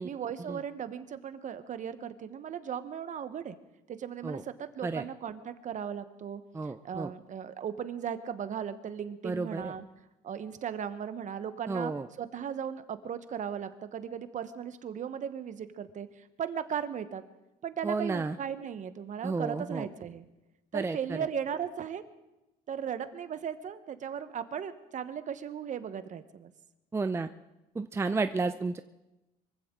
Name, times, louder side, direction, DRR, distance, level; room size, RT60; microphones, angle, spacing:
voice 1, 0.0-3.6 3.9-9.8 10.2-17.2 17.6-20.2 20.7-22.0 22.7-26.5, right 8 dB, 45° right, 12 dB, 1.1 m, -37 dB
voice 2, 6.5-7.1 9.2-9.7 11.7-12.0 17.8-18.4 19.2-19.9 20.7-21.2 26.9-27.3 27.8-28.8, right 3 dB, 15° right, 10 dB, 0.5 m, -32 dB
24.0 x 15.5 x 3.8 m, 0.98 s
cardioid pair, 110°, 17 cm